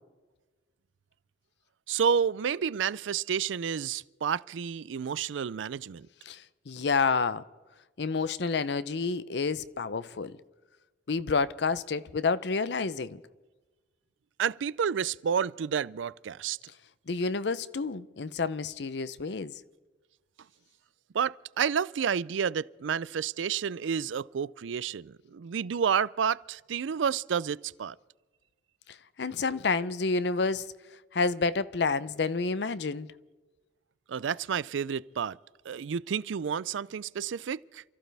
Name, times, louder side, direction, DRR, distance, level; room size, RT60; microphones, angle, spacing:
voice 1, 1.9-6.1 14.4-16.6 21.1-28.0 34.1-35.4 35.7-37.8, right 7 dB, 90° right, 0.4 m, -30 dB
voice 2, 6.3-7.4 8.0-10.4 11.1-13.2 17.1-19.5 28.9-30.7 31.1-33.1, left 4 dB, 65° left, 0.6 m, -29 dB
28.5 x 14.5 x 3.4 m
head